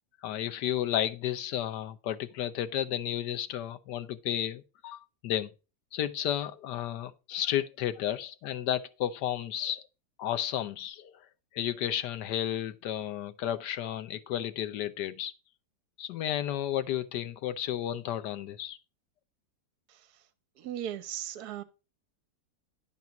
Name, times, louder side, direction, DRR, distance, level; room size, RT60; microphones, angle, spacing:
voice 1, 0.2-5.5 5.9-9.8 10.2-11.3 11.5-15.3 16.0-18.8, left 11 dB, 85° left, 1.3 m, -32 dB
voice 2, 20.6-21.6, right 10 dB, 70° right, 1.2 m, -37 dB
10.5 x 4.1 x 5.8 m
omnidirectional pair, 1.8 m